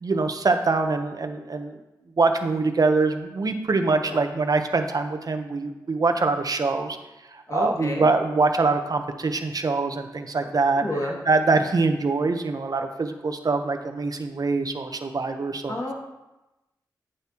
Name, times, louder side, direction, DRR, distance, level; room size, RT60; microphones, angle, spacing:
voice 1, 0.0-1.8 2.2-7.0 7.3-10.8 11.3-15.8, right 3 dB, 55° right, 7 dB, 0.9 m, -24 dB
voice 2, 7.5-8.1 10.4-11.2 15.7-15.9, left 1 dB, 40° left, -2 dB, 2.3 m, -31 dB
9.1 x 7.9 x 3.0 m, 1.0 s
cardioid pair, 40°, 8 cm